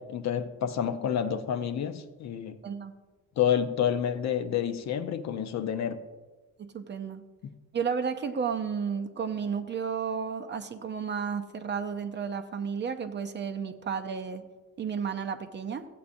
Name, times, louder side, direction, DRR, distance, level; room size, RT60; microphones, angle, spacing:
voice 1, 0.0-2.6 3.4-6.0, left 9 dB, 50° left, 9 dB, 0.6 m, -29 dB
voice 2, 2.6-2.9 6.6-7.2 7.7-14.4 14.8-15.9, right 6 dB, 30° right, 6 dB, 0.5 m, -32 dB
15.0 x 8.4 x 2.6 m, 1.3 s
cardioid pair, 150°, 34 cm